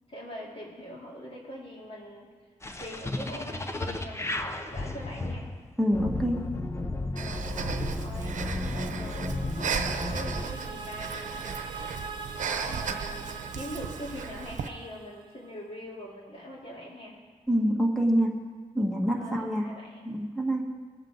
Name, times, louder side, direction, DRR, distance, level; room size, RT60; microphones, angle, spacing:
voice 1, 0.1-2.3 2.8-5.5 7.1-11.8 12.4-17.2 19.1-20.0, equal, 45° left, -5 dB, 3.7 m, -43 dB
sound 1, 2.6-10.5, left 2 dB, 20° left, 0.8 m, -33 dB
voice 2, 5.8-6.4 17.5-18.3 18.8-19.7 20.1-20.6, equal, 5° left, 0 dB, 1.7 m, -26 dB
Breathing, 7.2-14.7, right 6 dB, 75° right, 0.8 m, -35 dB
sound 2, 8.4-15.5, right 4 dB, 40° right, 0.8 m, -43 dB
20.0 x 7.3 x 4.0 m, 1.5 s
wide cardioid pair, 105°, 13 cm